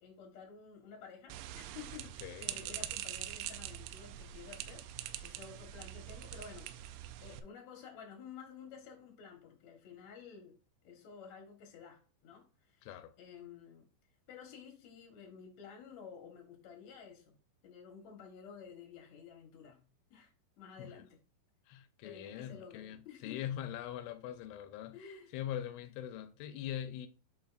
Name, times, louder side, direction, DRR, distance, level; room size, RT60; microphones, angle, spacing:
voice 1, 0.0-4.9 5.2-6.9 7.2-10.6 10.8-12.9 13.2-13.9 14.3-17.3 17.6-20.3 20.6-21.2 22.0-23.5 24.9-25.3, left 6 dB, 70° left, 1.7 m, -52 dB
sound 1, 1.3-7.4, right 13 dB, 85° right, 2.9 m, -44 dB
voice 2, 2.2-2.9 12.8-13.1 20.8-21.0 21.7-25.0 25.3-27.1, left 11 dB, 85° left, 3.1 m, -42 dB
11.5 x 4.0 x 2.5 m
omnidirectional pair, 5.4 m